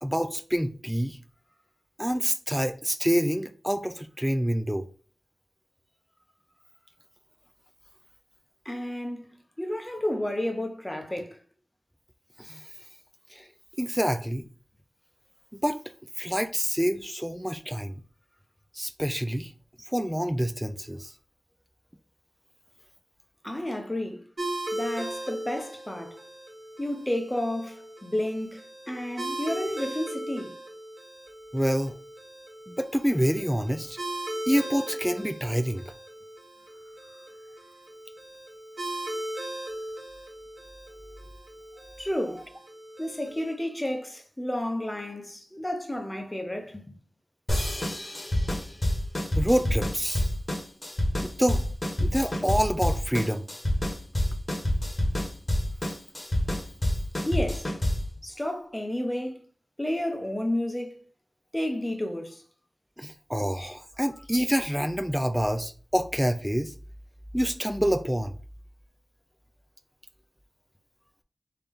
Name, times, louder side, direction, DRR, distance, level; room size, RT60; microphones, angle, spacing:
voice 1, 0.0-1.2 2.0-4.9 12.4-12.6 13.3-13.4 13.8-14.4 15.5-15.8 16.2-17.9 18.7-19.5 19.8-21.1 31.5-32.0 32.7-34.0 34.5-35.8 49.4-50.3 51.2-51.6 52.0-53.4 63.0-66.7 67.3-68.3, equal, 5° right, 0.3 m, -27 dB
voice 2, 8.7-11.4 23.4-24.2 24.7-26.2 26.8-28.6 28.9-30.6 42.0-42.4 43.0-47.0 57.2-57.7 58.2-59.4 59.8-61.0 61.5-62.4, left 1 dB, 15° left, 0.7 m, -31 dB
sound 1, 24.4-43.5, right 1 dB, 60° right, 1.3 m, -38 dB
sound 2, 47.5-58.2, left 1 dB, 35° left, 1.1 m, -28 dB
3.4 x 2.8 x 3.5 m
wide cardioid pair, 65°, 0 cm